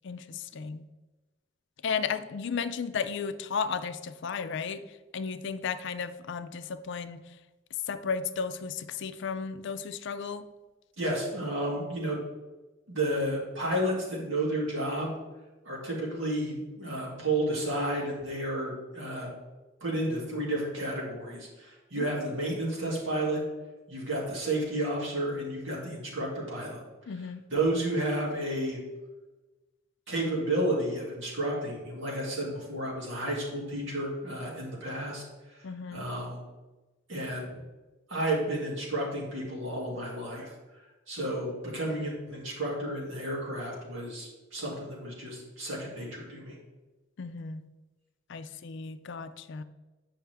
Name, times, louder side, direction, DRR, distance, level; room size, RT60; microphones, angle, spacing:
voice 1, 0.0-0.8 1.8-7.4 7.9-10.5 21.9-22.1 27.1-27.4 35.6-36.1 47.2-47.6 48.3-49.6, left 6 dB, 65° left, 11 dB, 0.4 m, -34 dB
voice 2, 11.0-12.2 12.9-15.2 15.6-19.3 19.8-23.4 23.9-26.8 27.5-28.8 30.1-35.2 35.9-36.4 37.1-37.5 38.1-40.5 41.1-46.6, right 1 dB, 70° right, -3 dB, 2.4 m, -31 dB
8.6 x 5.6 x 3.4 m, 1.1 s
head